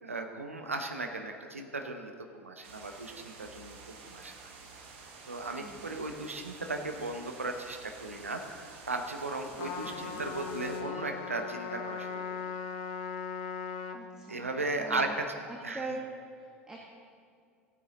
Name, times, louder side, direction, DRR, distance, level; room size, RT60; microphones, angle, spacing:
voice 1, 0.0-4.3 5.3-12.2 14.3-15.3 15.6-15.9, right 2 dB, 80° right, 5 dB, 0.9 m, -36 dB
sound 1, 2.6-10.8, right 4 dB, 60° right, 1.4 m, -50 dB
Trumpet, 9.6-14.0, left 6 dB, 50° left, 0.9 m, -38 dB
voice 2, 13.9-14.5 14.8-15.2 15.5-16.0 16.3-16.9, right 3 dB, 10° right, -1 dB, 1.3 m, -42 dB
16.0 x 8.9 x 3.9 m, 2.2 s
figure-of-eight pair, 75°, 7 cm